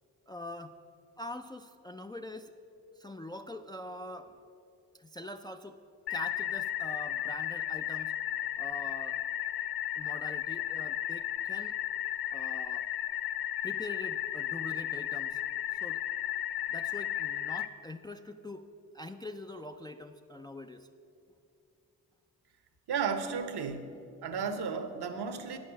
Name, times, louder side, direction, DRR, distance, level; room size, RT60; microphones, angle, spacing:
voice 1, 0.3-0.8 1.2-2.5 3.0-4.4 5.0-5.8 6.1-8.1 8.6-9.2 10.0-11.8 12.3-12.9 13.6-15.4 15.7-16.0 16.7-18.7 18.9-20.9, left 1 dB, 10° left, 6 dB, 0.3 m, -44 dB
sound 1, 6.1-17.7, left 12 dB, 60° left, 0.6 m, -34 dB
voice 2, 22.9-23.9 24.2-25.6, right 6 dB, 65° right, 9 dB, 0.9 m, -33 dB
9.1 x 6.4 x 6.2 m, 2.6 s
supercardioid pair, 40°, 43 cm